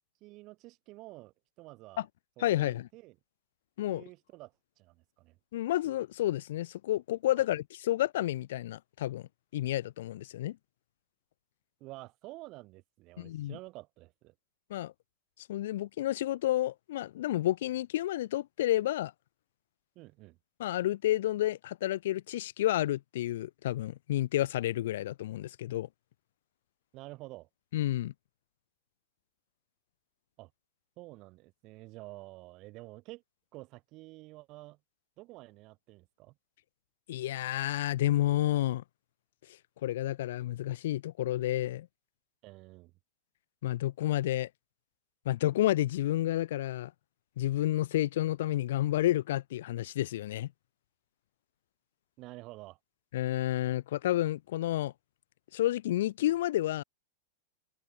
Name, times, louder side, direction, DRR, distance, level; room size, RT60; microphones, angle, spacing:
voice 1, 0.2-2.0 2.4-3.1 3.9-5.4 11.8-14.3 19.9-20.4 26.9-27.5 30.4-30.5 31.0-33.2 33.5-34.8 35.2-36.3 42.4-42.9 52.2-52.8, right 21 dB, 40° right, 2.9 m, -49 dB
voice 2, 2.4-2.9 3.8-4.0 5.5-10.6 13.2-13.6 14.7-14.9 15.5-19.1 20.6-25.9 27.7-28.1 37.1-38.8 39.8-41.9 43.6-44.5 45.3-46.9 47.4-50.5 53.1-54.9 55.5-56.8, left 14 dB, 70° left, 0.7 m, -30 dB
hypercardioid pair, 135°, 0 cm